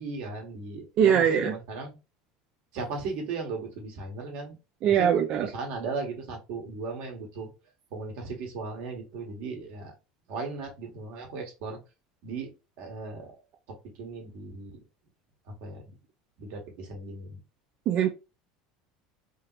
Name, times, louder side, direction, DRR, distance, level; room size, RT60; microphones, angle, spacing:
voice 1, 0.0-1.9 2.7-4.6 4.8-5.1 5.4-7.5 7.9-9.9 10.3-11.8 12.2-12.5 12.8-13.3 13.7-14.8 15.4-16.0 16.4-17.4, right 3 dB, 70° right, 1.5 m, -37 dB
voice 2, 1.0-1.5 4.8-5.5 17.9-18.1, right 8 dB, 50° right, 0.5 m, -22 dB
3.6 x 2.8 x 2.4 m
supercardioid pair, 105°, 3 cm